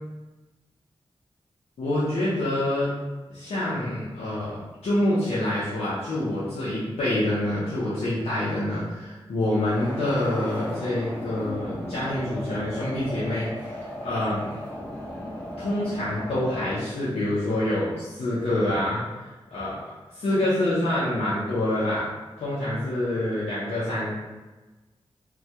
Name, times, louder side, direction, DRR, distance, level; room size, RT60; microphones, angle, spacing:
voice 1, 1.8-2.9 3.3-13.7 14.0-14.5 15.6-19.0 19.5-19.8 20.1-22.1 22.4-24.1, left 1 dB, 80° left, -10 dB, 0.6 m, -26 dB
sound 1, 9.5-16.8, equal, 10° left, 0.8 m, -36 dB
2.2 x 2.1 x 2.7 m, 1.2 s
cardioid pair, 45°, 10 cm